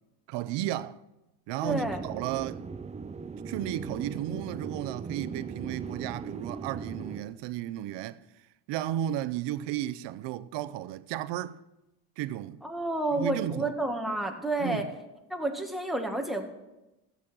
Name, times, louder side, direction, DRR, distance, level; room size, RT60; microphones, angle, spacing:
voice 1, 0.3-1.0 1.5-2.6 3.5-8.2 8.7-11.6 12.2-12.6 13.1-13.7 14.6-14.9, right 12 dB, 80° right, 0.7 m, -34 dB
voice 2, 1.6-2.0 12.6-14.8 15.3-16.5, right 2 dB, ahead, 1.7 m, -30 dB
sound 1, 1.7-7.2, right 5 dB, 15° right, 0.5 m, -39 dB
14.0 x 8.4 x 6.1 m
cardioid pair, 120°, 41 cm